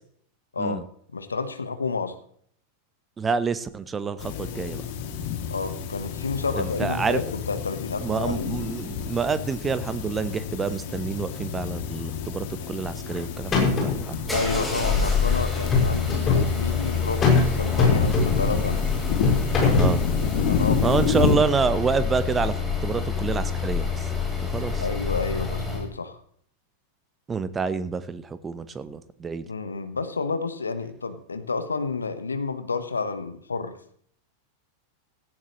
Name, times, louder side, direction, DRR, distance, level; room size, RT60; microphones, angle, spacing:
voice 1, 1.1-2.2 5.5-8.7 14.3-18.8 20.3-21.0 24.8-26.2 29.5-33.8, left 4 dB, 75° left, 10 dB, 1.3 m, -30 dB
voice 2, 3.2-4.8 6.5-7.2 8.0-14.2 19.8-20.0 20.8-24.1 24.5-24.8 27.3-29.5, right 5 dB, 20° right, 14 dB, 1.0 m, -28 dB
sound 1, 4.2-21.4, left 6 dB, 50° left, 2.6 m, -30 dB
sound 2, 12.8-13.2 13.5-14.1 15.5-16.5 17.2-17.5 17.8-18.5 19.2-20.0, left 4 dB, 25° left, 6.2 m, -21 dB
sound 3, 13.4-25.9, left 5 dB, 5° left, 4.5 m, -27 dB
17.0 x 15.0 x 3.2 m, 0.62 s
figure-of-eight pair, 90°, 0 cm